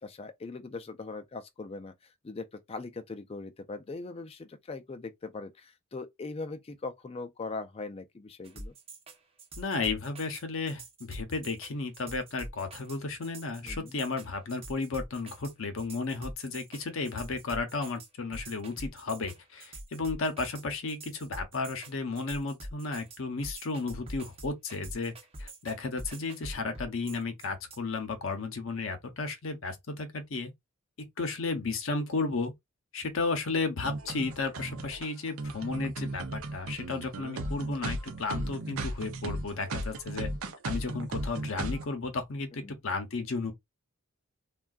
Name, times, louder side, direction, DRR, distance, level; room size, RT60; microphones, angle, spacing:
voice 1, 0.0-8.7 13.6-14.0 42.6-42.7, left 3 dB, 25° left, 0.4 m, -40 dB
sound 1, 8.4-27.8, right 1 dB, 25° right, 0.7 m, -44 dB
voice 2, 9.6-25.1 25.4-30.5 31.0-32.5 32.9-40.3 40.6-43.5, left 3 dB, 65° left, 0.7 m, -33 dB
sound 2, 33.9-41.8, right 2 dB, 75° right, 0.6 m, -36 dB
3.6 x 2.3 x 2.3 m
head